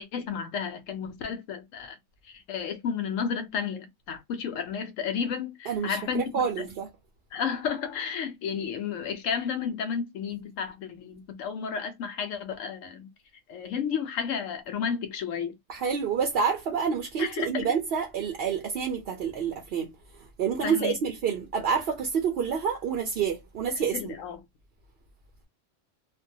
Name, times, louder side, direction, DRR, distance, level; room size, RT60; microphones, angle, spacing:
voice 1, 0.0-2.0 2.2-6.7 7.3-13.1 13.5-15.6 17.2-17.7 20.6-21.0 23.9-24.4, left 7 dB, 85° left, 1.0 m, -32 dB
voice 2, 5.7-6.9 15.7-19.9 20.4-24.2, right 6 dB, 60° right, 0.7 m, -28 dB
2.5 x 2.2 x 2.6 m
omnidirectional pair, 1.3 m